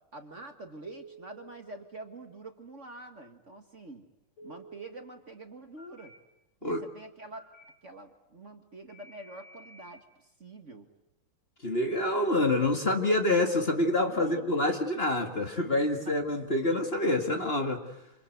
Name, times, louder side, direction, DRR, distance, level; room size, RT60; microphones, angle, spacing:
voice 1, 0.1-4.0 4.4-6.1 6.6-7.5 7.8-10.1 10.4-10.9 14.0-14.5 16.0-16.1, right 2 dB, 35° right, 6 dB, 1.9 m, -46 dB
Telephone, 0.9-1.4 4.4-4.9 5.8-6.1 7.3-7.6 8.9-9.9, right 2 dB, 80° left, 7.7 m, -51 dB
voice 2, 11.6-17.8, left 2 dB, 30° left, 4 dB, 2.2 m, -27 dB
27.0 x 27.0 x 8.0 m, 0.88 s
omnidirectional pair, 2.3 m